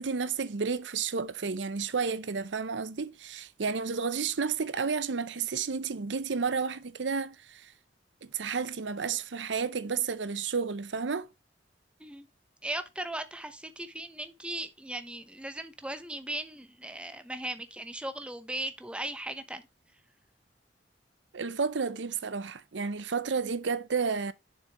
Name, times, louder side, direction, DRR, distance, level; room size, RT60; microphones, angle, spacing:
voice 1, 0.0-7.7 8.2-11.3 21.3-24.3, right 5 dB, 85° right, 0.7 m, -31 dB
voice 2, 12.6-19.6, right 1 dB, 5° right, 0.9 m, -38 dB
7.1 x 6.4 x 3.1 m
head